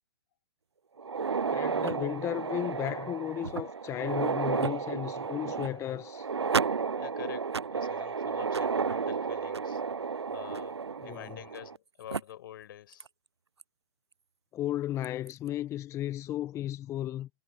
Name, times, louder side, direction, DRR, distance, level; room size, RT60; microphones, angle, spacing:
sound 1, 1.0-11.8 12.1-12.2 13.0-13.1 13.6-13.7 15.0-15.3, right 5 dB, 90° right, 0.6 m, -32 dB
voice 1, 1.4-6.3 11.0-11.4 14.5-17.3, left 12 dB, 20° left, 1.0 m, -34 dB
voice 2, 7.0-9.8 10.3-13.1, left 12 dB, 55° left, 5.7 m, -47 dB
hypercardioid pair, 125°, 14 cm